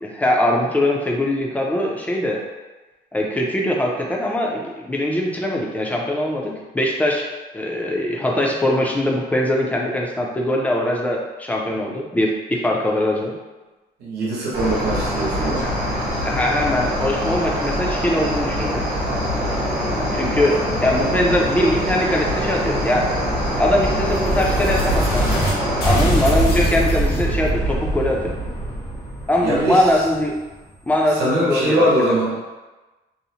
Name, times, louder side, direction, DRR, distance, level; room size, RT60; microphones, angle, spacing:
voice 1, 0.0-2.4 3.1-7.3 7.5-13.3 16.2-18.8 20.1-20.5 20.8-23.0 23.6-25.4 25.8-28.3 29.3-30.3 30.9-31.9, left 1 dB, 10° left, -1 dB, 0.4 m, -21 dB
voice 2, 14.0-15.7 29.4-29.8 31.2-32.3, right 1 dB, 80° right, -6 dB, 0.9 m, -21 dB
Cricket, 14.5-25.9, equal, 55° right, 0.9 m, -24 dB
sound 1, 22.1-25.5 25.8-30.5, right 1 dB, 85° left, 0.7 m, -23 dB
2.7 x 2.0 x 2.8 m, 1.2 s
cardioid pair, 130°, 16 cm